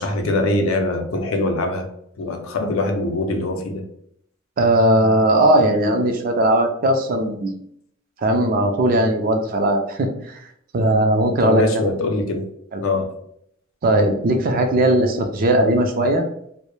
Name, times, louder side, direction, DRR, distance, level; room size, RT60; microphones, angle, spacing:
voice 1, 0.0-1.9 2.2-3.8 11.4-12.5 12.8-13.1, left 2 dB, 90° left, 4 dB, 0.5 m, -22 dB
voice 2, 4.6-7.5 8.2-10.4 10.7-11.6 12.7-12.8 13.8-16.3, right 1 dB, 45° right, 5 dB, 0.4 m, -18 dB
2.2 x 2.0 x 3.0 m, 0.70 s
head